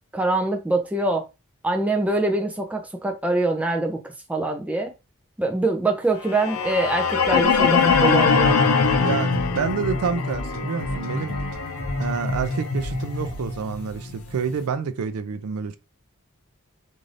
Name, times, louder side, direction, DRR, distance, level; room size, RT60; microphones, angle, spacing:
voice 1, 0.1-1.3 1.6-4.0 4.3-4.9 5.4-8.6, right 2 dB, 5° right, 0.4 m, -24 dB
sound 1, 6.3-14.4, left 4 dB, 75° left, 0.6 m, -23 dB
sound 2, 7.9-13.4, left 1 dB, 55° right, 1.1 m, -37 dB
voice 2, 9.0-11.4 12.0-15.8, right 6 dB, 80° right, 0.4 m, -28 dB
2.5 x 2.5 x 3.2 m
head